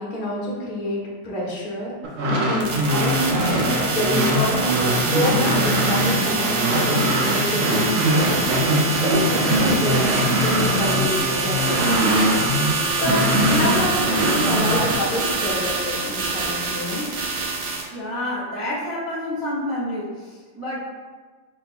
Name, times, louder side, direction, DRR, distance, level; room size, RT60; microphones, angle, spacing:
voice 1, 0.0-2.0 2.4-8.3 9.0-12.3 13.0-17.1, left 1 dB, 40° left, -5 dB, 0.8 m, -27 dB
sound 1, 2.0-12.7 13.0-14.9, equal, 60° right, 0.8 m, -22 dB
sound 2, 2.6-17.8, right 3 dB, 80° right, 1.5 m, -25 dB
voice 2, 17.9-20.8, left 1 dB, 30° right, -9 dB, 0.4 m, -29 dB
4.0 x 2.2 x 4.3 m, 1.4 s
omnidirectional pair, 2.0 m